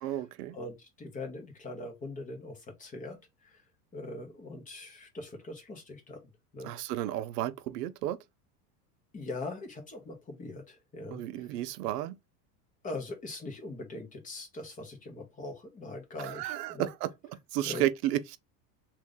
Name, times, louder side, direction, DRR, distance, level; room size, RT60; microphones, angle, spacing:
voice 1, 0.0-0.6 6.6-8.2 11.1-12.2 16.2-18.4, right 13 dB, 85° right, 0.7 m, -33 dB
voice 2, 0.5-3.2 3.4-3.6 3.9-6.2 6.5-7.0 9.1-11.5 12.8-16.9 17.6-17.8, left 2 dB, 15° left, 1.0 m, -41 dB
3.1 x 2.5 x 3.7 m
supercardioid pair, 150°, 46 cm